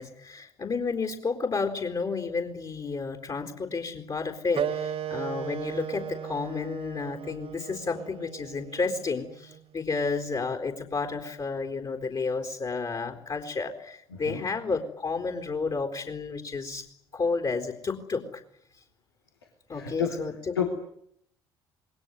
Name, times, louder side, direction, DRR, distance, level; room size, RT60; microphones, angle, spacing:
voice 1, 0.0-16.9 17.1-18.4 19.7-20.3, left 4 dB, 35° left, 5 dB, 4.2 m, -31 dB
Wind instrument woodwind instrument, 4.5-9.7, right 9 dB, 50° right, 2.0 m, -36 dB
voice 2, 14.1-14.4 19.7-20.2 20.5-20.7, left 7 dB, 80° left, 1 dB, 2.9 m, -30 dB
28.0 x 21.5 x 9.4 m, 0.72 s
figure-of-eight pair, 50°, 13 cm